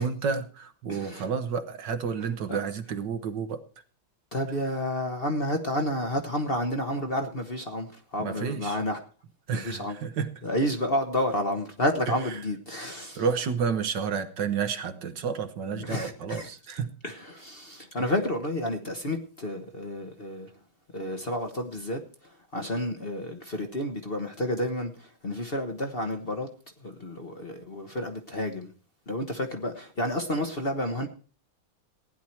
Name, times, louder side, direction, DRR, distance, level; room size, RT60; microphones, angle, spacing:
voice 1, 0.0-3.6 8.2-8.8 9.5-10.3 12.1-12.4 13.2-16.9 18.0-18.1, right 6 dB, 65° right, 1.7 m, -30 dB
voice 2, 0.9-1.3 2.5-2.6 4.3-7.9 8.1-9.0 9.5-10.0 10.4-13.2 15.7-16.5 17.0-20.5 20.9-22.0 22.5-24.9 25.2-26.5 26.8-28.7 29.1-31.1, left 1 dB, 35° left, 1.2 m, -30 dB
16.0 x 10.5 x 4.5 m
omnidirectional pair, 2.2 m